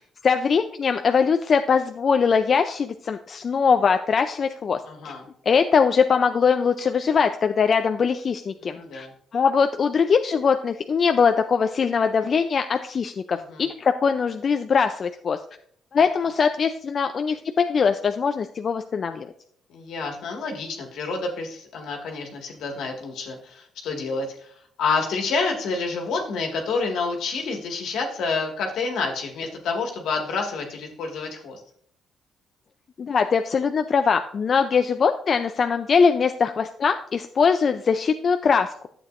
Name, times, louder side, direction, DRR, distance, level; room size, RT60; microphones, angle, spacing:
voice 1, 0.2-4.8 5.0-5.1 5.5-9.1 9.3-15.4 15.9-19.3 33.0-38.7, left 6 dB, 45° left, 7 dB, 0.4 m, -21 dB
voice 2, 4.9-5.2 8.6-9.1 13.5-13.6 19.7-24.3 24.8-31.6, left 4 dB, 80° left, 1 dB, 1.8 m, -28 dB
12.0 x 7.8 x 2.5 m, 0.63 s
cardioid pair, 90°, 0 cm